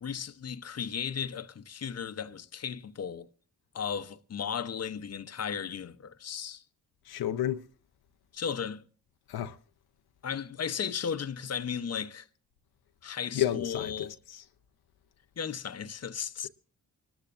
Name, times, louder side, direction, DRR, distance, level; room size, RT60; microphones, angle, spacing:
voice 1, 0.0-3.3 3.7-6.6 8.3-8.8 10.2-12.3 13.0-14.1 15.4-16.5, left 7 dB, 45° left, 0.8 m, -35 dB
voice 2, 7.1-7.6 9.3-9.6 13.3-14.4, left 12 dB, 85° left, 0.7 m, -31 dB
25.0 x 13.5 x 2.5 m
cardioid pair, 55°, 37 cm